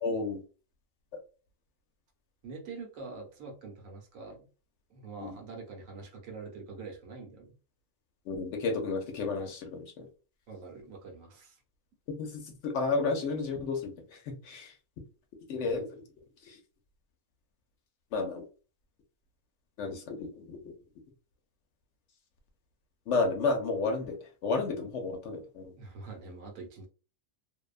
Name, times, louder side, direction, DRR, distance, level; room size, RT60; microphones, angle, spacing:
voice 1, 0.0-0.4 5.2-5.3 8.3-10.1 12.1-13.9 14.5-14.7 15.5-15.9 18.1-18.4 19.8-20.6 23.1-24.2 24.4-25.7, left 3 dB, 65° left, 4 dB, 0.8 m, -31 dB
voice 2, 2.4-4.5 4.9-7.6 10.5-11.6 25.8-26.9, right 4 dB, 75° right, 2 dB, 1.1 m, -45 dB
2.6 x 2.1 x 2.3 m, 0.35 s
omnidirectional pair, 1.4 m